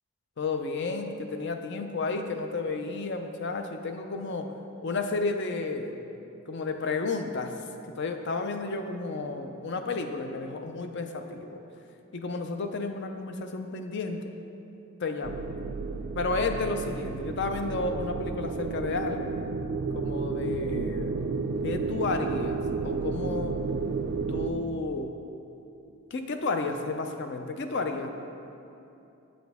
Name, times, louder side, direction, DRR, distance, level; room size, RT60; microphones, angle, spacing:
voice 1, 0.4-4.5 4.8-6.0 6.5-7.6 8.0-11.6 12.1-14.2 15.0-15.5 16.2-19.3 19.9-21.1 21.6-23.6 24.3-25.1 26.1-28.1, left 3 dB, 50° left, 6 dB, 0.5 m, -32 dB
sound 1, 15.2-24.5, right 4 dB, 50° right, 0.3 m, -32 dB
7.8 x 6.2 x 3.5 m, 2.7 s
head